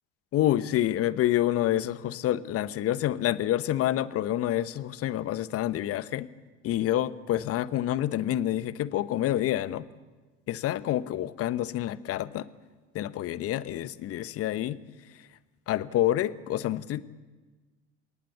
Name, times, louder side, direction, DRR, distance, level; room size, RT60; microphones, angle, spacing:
voice 1, 0.3-6.3 6.6-9.9 10.5-12.5 12.9-14.8 15.7-17.0, left 13 dB, 40° left, 16 dB, 1.1 m, -28 dB
28.5 x 18.5 x 7.1 m, 1.3 s
figure-of-eight pair, 70°, 36 cm